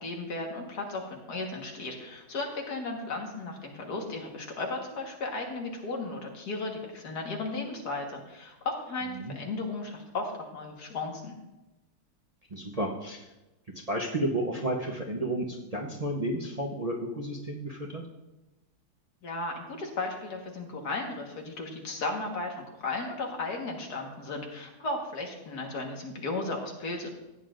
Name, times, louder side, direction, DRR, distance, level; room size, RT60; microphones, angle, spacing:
voice 1, 0.0-11.4 19.2-27.1, left 3 dB, 80° left, 1 dB, 2.1 m, -35 dB
voice 2, 12.5-13.3 13.9-18.0, right 1 dB, 30° right, -1 dB, 0.7 m, -32 dB
15.0 x 9.1 x 2.6 m, 1.0 s
omnidirectional pair, 1.7 m